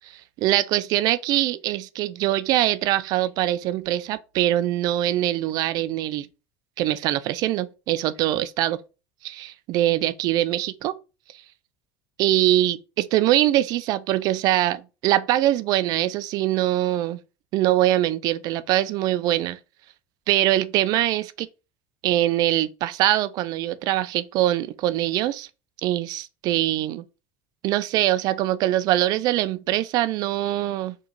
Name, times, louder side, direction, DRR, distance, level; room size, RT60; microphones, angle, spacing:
voice 1, 0.1-6.3 6.8-8.8 9.2-10.9 12.2-17.2 17.5-19.6 20.3-21.5 22.0-25.5 25.8-27.0 27.6-31.0, right 14 dB, 60° right, 0.4 m, -23 dB
3.9 x 2.4 x 4.4 m
supercardioid pair, 100°, 8 cm